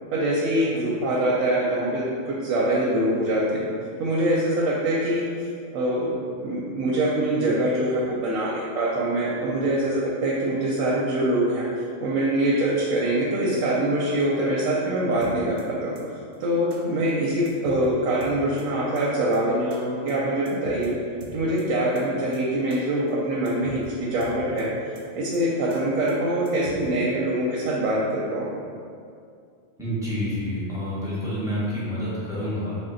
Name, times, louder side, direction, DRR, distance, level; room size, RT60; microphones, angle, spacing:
voice 1, 0.1-3.7 4.0-5.3 5.7-6.1 6.4-11.7 12.0-15.9 16.4-20.9 21.3-23.8 24.1-24.7 25.1-28.5, right 1 dB, 85° right, -5 dB, 1.0 m, -24 dB
sound 1, 15.2-15.6 15.9-16.0 16.3-16.4 16.7-16.8 17.1-17.2 17.4-17.9 18.2-18.6 18.9-19.0 19.3-19.4 19.7-19.8 20.1-20.2 20.4-20.9 21.2-21.6 21.9-22.0 22.3-22.4 22.7-22.8 23.1-23.2 23.4-23.9 24.2-24.6 24.9-25.0 25.3-25.4 25.7-25.8 26.1-26.2 26.4-26.9, right 2 dB, 65° right, 0.8 m, -44 dB
voice 2, 29.8-32.7, equal, 5° right, -10 dB, 0.8 m, -28 dB
3.5 x 2.2 x 3.8 m, 2.3 s
omnidirectional pair, 1.3 m